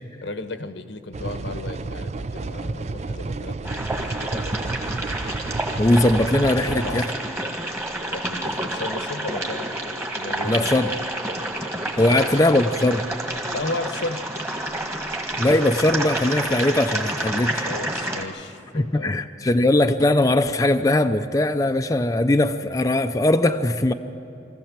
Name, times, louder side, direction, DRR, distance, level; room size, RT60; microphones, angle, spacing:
voice 1, 0.2-4.6 6.7-7.0 8.0-9.7 10.2-10.7 12.0-12.2 13.5-14.2 17.6-19.1, left 2 dB, 85° left, 9 dB, 1.1 m, -34 dB
sound 1, 1.1-7.1, right 3 dB, 40° right, 0.4 m, -31 dB
sound 2, 3.6-18.2, right 1 dB, 15° right, 1.7 m, -29 dB
voice 2, 5.8-7.0 10.4-10.9 12.0-13.0 15.4-17.7 18.7-23.9, left 1 dB, 20° left, 7 dB, 0.5 m, -20 dB
24.0 x 15.0 x 7.4 m, 3.0 s
head